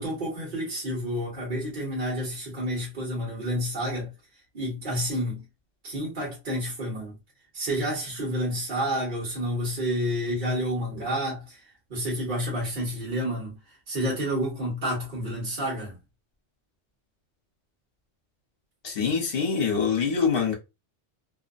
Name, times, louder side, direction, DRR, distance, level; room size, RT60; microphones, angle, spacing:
voice 1, 0.0-4.1 4.5-5.4 5.8-7.1 7.5-11.6 11.9-13.6 13.9-15.9, equal, 45° right, 1.2 m, -29 dB
voice 2, 18.8-20.5, left 6 dB, 55° left, 1.0 m, -24 dB
2.6 x 2.1 x 2.5 m
omnidirectional pair, 1.2 m